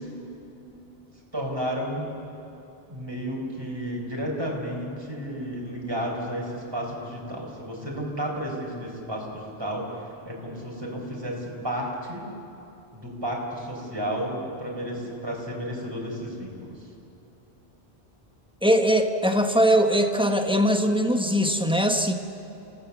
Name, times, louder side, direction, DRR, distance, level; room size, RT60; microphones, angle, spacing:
voice 1, 1.3-2.1 2.9-12.2 12.9-16.7, equal, 25° right, -2 dB, 4.5 m, -32 dB
voice 2, 18.6-22.1, equal, 5° right, 5 dB, 1.3 m, -21 dB
27.5 x 17.5 x 7.2 m, 2.9 s
omnidirectional pair, 1.0 m